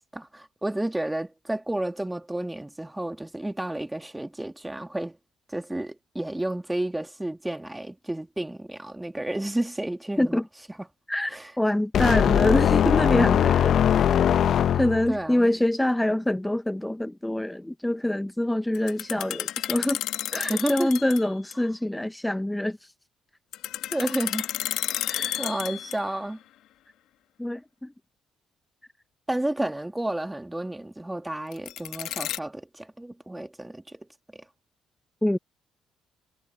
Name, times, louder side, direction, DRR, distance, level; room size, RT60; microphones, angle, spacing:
voice 1, 0.1-5.2 5.5-10.4 11.3-11.5 15.1-15.5 20.5-20.9 23.9-24.5 24.9-25.0 25.4-26.4 29.3-34.4, right 1 dB, 10° right, 2.2 m, -31 dB
voice 2, 11.1-14.3 14.7-20.0 20.3-22.9 25.0-25.4 27.4-27.9 35.2-35.4, left 1 dB, 10° left, 0.7 m, -25 dB
sound 1, 11.9-15.2, left 9 dB, 60° left, 0.8 m, -20 dB
sound 2, 18.7-21.2 21.5-21.6 23.5-26.2 31.5-32.4, left 13 dB, 80° left, 1.6 m, -31 dB
supercardioid pair, 70°, 0 cm